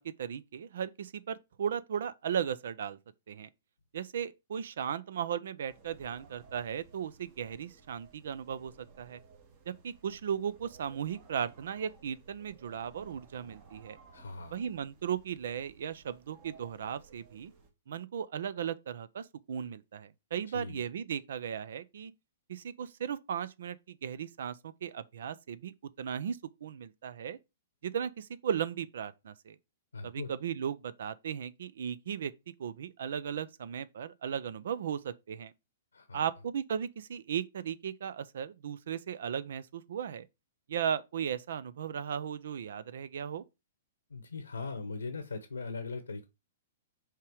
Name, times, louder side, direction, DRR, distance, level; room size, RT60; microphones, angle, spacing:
voice 1, 0.0-3.0 3.3-3.5 3.9-9.2 9.7-14.0 14.5-17.5 17.9-22.1 22.5-27.4 27.8-29.6 30.0-32.3 32.6-35.5 36.1-40.3 40.7-43.4, right 8 dB, 65° right, 0.5 m, -36 dB
sound 1, 5.7-17.7, right 5 dB, 45° right, 1.9 m, -58 dB
voice 2, 14.1-14.6 20.5-20.8 29.9-30.3 35.9-36.3 44.1-46.3, left 3 dB, 90° left, 0.9 m, -40 dB
5.6 x 3.7 x 4.6 m
hypercardioid pair, 115°, 0 cm